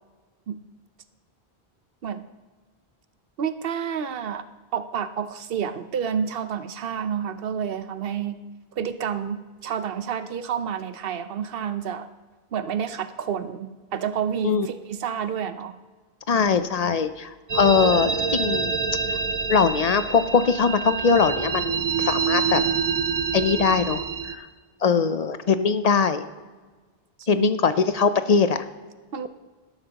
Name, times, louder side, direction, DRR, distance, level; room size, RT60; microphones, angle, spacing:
voice 1, 3.4-4.4 4.7-8.4 8.8-12.1 12.5-15.8 27.2-27.5 29.1-29.3, right 8 dB, 65° right, 11 dB, 0.9 m, -29 dB
voice 2, 16.3-18.7 19.5-22.6 23.3-24.5 24.8-26.2 27.3-28.7, left 5 dB, 50° left, 11 dB, 0.5 m, -21 dB
sound 1, 17.5-24.3, right 5 dB, 45° right, 0.6 m, -26 dB
13.0 x 12.0 x 2.9 m, 1.3 s
omnidirectional pair, 1.1 m